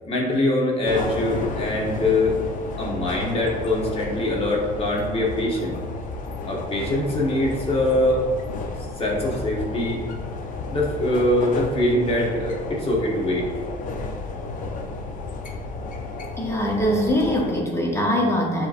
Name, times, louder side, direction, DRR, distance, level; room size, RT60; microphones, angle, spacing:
voice 1, 0.0-2.3 2.8-5.7 6.5-8.2 9.0-10.0 10.7-13.5, left 1 dB, 35° left, -3 dB, 1.0 m, -23 dB
sound 1, 0.8-17.6, left 3 dB, 50° left, 0.5 m, -32 dB
voice 2, 16.4-18.7, equal, 15° left, -1 dB, 0.7 m, -22 dB
6.6 x 3.0 x 2.5 m, 1.5 s
cardioid pair, 110°, 17 cm